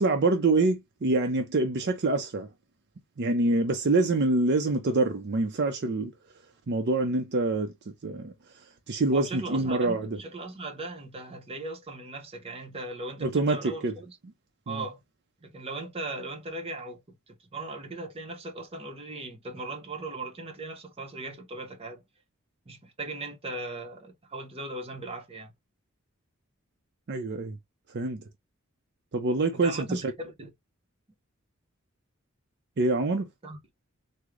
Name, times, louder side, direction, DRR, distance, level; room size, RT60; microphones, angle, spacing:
voice 1, 0.0-2.5 3.2-6.1 6.7-8.3 8.9-10.2 13.2-13.9 14.7-14.8 27.1-27.6 27.9-28.2 29.1-30.0 32.8-33.3, right 2 dB, 55° right, 0.5 m, -26 dB
voice 2, 9.1-14.2 14.7-15.0 15.4-22.0 22.7-25.5 29.5-30.5 33.4-33.6, right 2 dB, 30° right, 0.8 m, -38 dB
3.6 x 2.1 x 3.0 m
head